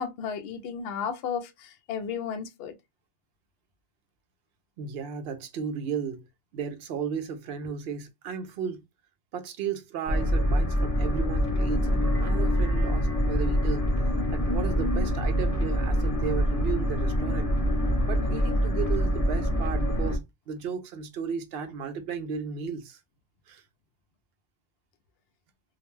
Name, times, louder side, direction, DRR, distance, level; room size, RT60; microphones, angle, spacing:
voice 1, 0.0-2.7 18.2-18.5, left 7 dB, 70° left, 0.8 m, -34 dB
voice 2, 4.8-6.2 6.5-8.8 9.3-13.9 14.3-17.6 18.1-23.0 23.5-23.6, right 6 dB, 65° right, 0.7 m, -34 dB
sound 1, 10.1-20.2, equal, 35° left, 0.9 m, -25 dB
2.4 x 2.1 x 3.1 m
omnidirectional pair, 1.1 m